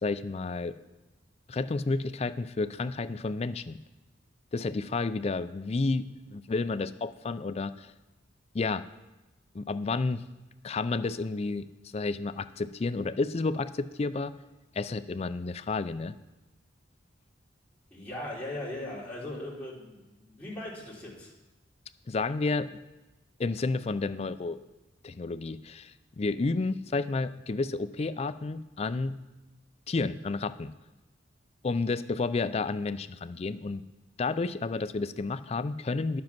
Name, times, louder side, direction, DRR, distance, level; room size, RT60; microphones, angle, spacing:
voice 1, 0.0-0.8 1.5-3.8 4.5-7.9 8.5-8.9 9.5-10.2 10.6-11.7 11.9-14.3 14.7-16.1 22.1-22.7 23.4-24.6 25.0-29.2 29.9-30.7 31.6-33.8 34.2-36.2, left 3 dB, 35° left, 13 dB, 0.4 m, -31 dB
voice 2, 17.9-21.3, left 1 dB, 10° left, -7 dB, 3.1 m, -39 dB
10.5 x 7.5 x 5.9 m, 1.1 s
head